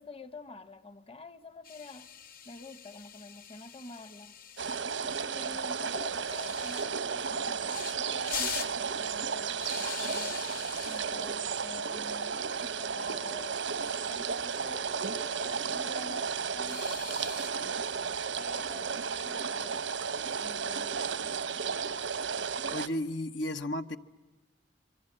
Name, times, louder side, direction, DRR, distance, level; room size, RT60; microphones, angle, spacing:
voice 1, 0.0-2.1 2.4-4.4 5.0-10.5 10.8-13.6 14.0-17.7 18.4-20.0 20.4-21.2, left 3 dB, 35° left, 12 dB, 1.1 m, -48 dB
sound 1, 1.6-4.8 6.2-6.8 7.7-8.0 8.3-8.7 9.6-11.0 12.2-12.4 12.7-12.8 13.1-13.2 14.5-15.0 16.6-17.5, left 8 dB, 50° left, 1.3 m, -42 dB
sound 2, 4.6-22.9, right 6 dB, 85° right, 1.1 m, -33 dB
voice 2, 22.7-24.0, left 1 dB, 80° left, 8 dB, 1.1 m, -33 dB
27.0 x 24.0 x 8.8 m, 1.2 s
head